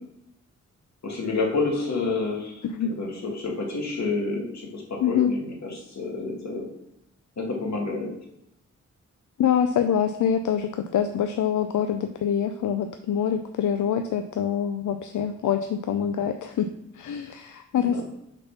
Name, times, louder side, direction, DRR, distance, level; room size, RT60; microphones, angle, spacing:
voice 1, 1.0-6.7 7.4-8.1 17.8-18.0, left 3 dB, 65° left, 0 dB, 1.7 m, -29 dB
voice 2, 5.0-5.3 9.4-16.7 17.0-18.0, left 8 dB, 85° left, 7 dB, 0.5 m, -25 dB
6.7 x 4.1 x 5.7 m, 0.81 s
wide cardioid pair, 150°, 29 cm